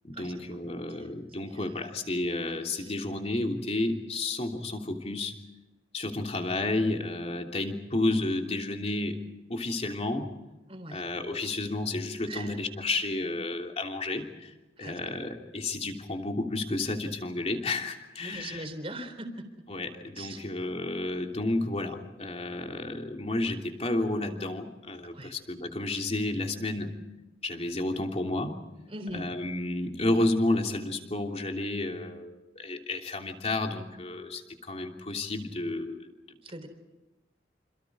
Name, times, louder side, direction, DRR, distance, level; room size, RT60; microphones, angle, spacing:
voice 1, 0.0-5.3 5.9-9.2 9.5-10.3 10.9-14.5 14.8-18.7 19.7-26.9 27.4-28.6 29.1-34.4 34.7-36.0, left 2 dB, 35° left, 2 dB, 3.1 m, -31 dB
voice 2, 10.7-11.0 12.3-12.6 14.8-15.2 18.2-19.5 20.2-20.5 25.1-25.3 28.9-29.3 36.4-36.7, right 1 dB, 30° right, 6 dB, 3.8 m, -40 dB
28.0 x 27.5 x 4.9 m, 1.1 s
head